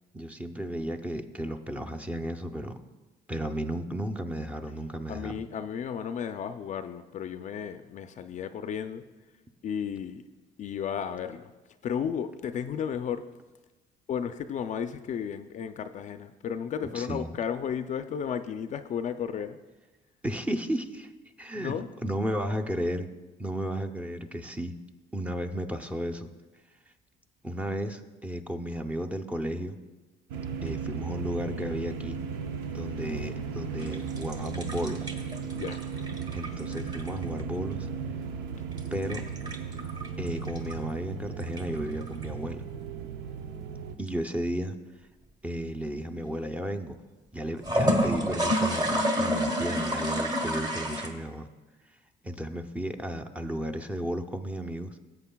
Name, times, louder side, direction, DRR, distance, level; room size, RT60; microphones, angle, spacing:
voice 1, 0.1-2.8 3.3-5.4 16.9-17.3 20.2-21.1 21.4-21.7 22.0-23.1 23.4-24.7 25.1-26.3 27.4-29.8 30.6-32.2 32.7-35.1 36.3-37.9 38.9-39.2 40.2-42.6 44.0-44.8 45.4-47.0 47.3-51.5 52.2-55.0, equal, 10° right, 4 dB, 0.6 m, -33 dB
voice 2, 5.1-9.0 9.6-10.2 10.6-11.5 11.8-13.2 14.1-19.6 21.5-21.9 35.5-35.8, left 8 dB, 45° left, 10 dB, 0.4 m, -33 dB
sound 1, 30.3-44.0, right 5 dB, 90° right, 0.6 m, -36 dB
sound 2, 33.8-37.4 38.7-40.7 41.4-42.2 47.6-51.1, equal, 25° right, 1.2 m, -29 dB
16.5 x 7.8 x 2.3 m, 1.2 s
cardioid pair, 110°, 17 cm